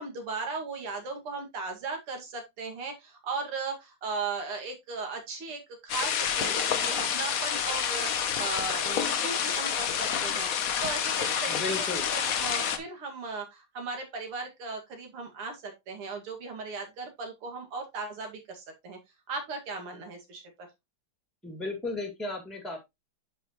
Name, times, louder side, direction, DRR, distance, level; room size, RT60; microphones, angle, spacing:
voice 1, 0.0-10.5 10.8-11.9 12.1-19.0 19.3-20.7, right 4 dB, 90° right, 3 dB, 3.0 m, -37 dB
sound 1, 5.9-12.8, left 8 dB, 55° left, 1.0 m, -28 dB
voice 2, 11.5-12.0 21.4-22.8, left 2 dB, ahead, 4 dB, 1.8 m, -34 dB
9.9 x 5.3 x 3.0 m, 0.20 s
omnidirectional pair, 2.4 m